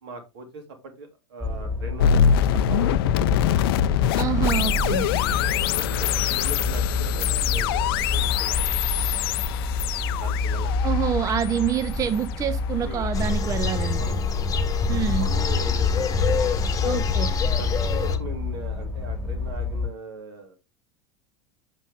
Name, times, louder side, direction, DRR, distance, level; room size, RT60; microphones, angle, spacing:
voice 1, 0.0-3.5 4.2-4.5 4.8-9.5 10.2-10.8 12.8-13.1 14.0-14.2 14.9-16.2 16.7-17.1 17.6-20.6, right 3 dB, 60° right, 2.5 m, -40 dB
sound 1, 1.4-19.9, left 3 dB, 5° right, 2.5 m, -28 dB
sound 2, 2.0-13.0, left 9 dB, 55° left, 0.5 m, -24 dB
voice 2, 4.2-5.1 10.8-14.0 14.9-15.3 16.8-17.3, right 9 dB, 25° right, 0.5 m, -27 dB
sound 3, 13.1-18.2, left 5 dB, 25° left, 1.2 m, -26 dB
7.4 x 6.1 x 3.6 m
figure-of-eight pair, 80°, 15 cm